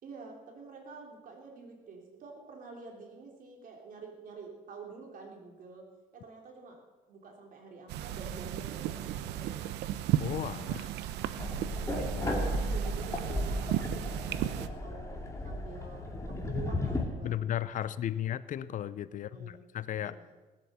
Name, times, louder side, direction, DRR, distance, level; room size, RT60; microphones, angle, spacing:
voice 1, 0.0-5.9 6.1-6.8 7.1-9.7 11.6-15.1 15.4-17.3 19.1-19.6 19.9-20.4, right 4 dB, 55° right, 1 dB, 3.5 m, -48 dB
sound 1, 7.9-14.7, right 12 dB, 85° right, 0.7 m, -35 dB
voice 2, 10.2-10.9 12.0-12.3 17.2-20.2, left 11 dB, 50° left, 17 dB, 0.5 m, -35 dB
sound 2, 11.4-17.1, left 1 dB, 15° left, 2.4 m, -34 dB
18.5 x 8.4 x 6.8 m, 1.2 s
cardioid pair, 110°, 17 cm